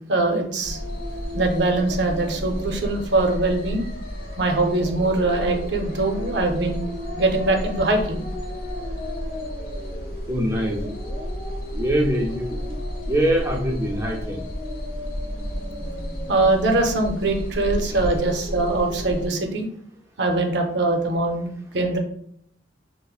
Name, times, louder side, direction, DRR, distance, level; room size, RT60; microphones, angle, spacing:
voice 1, 0.1-0.8 1.3-3.8 4.4-6.8 7.2-8.2 16.3-19.7 20.2-22.0, right 2 dB, 65° right, 3 dB, 0.6 m, -22 dB
sound 1, 0.6-19.3, equal, 50° left, 0.9 m, -31 dB
voice 2, 10.3-10.9 11.7-12.8 13.1-14.4 17.9-18.0, equal, 15° right, 0 dB, 0.5 m, -24 dB
5.4 x 2.1 x 2.3 m, 0.67 s
head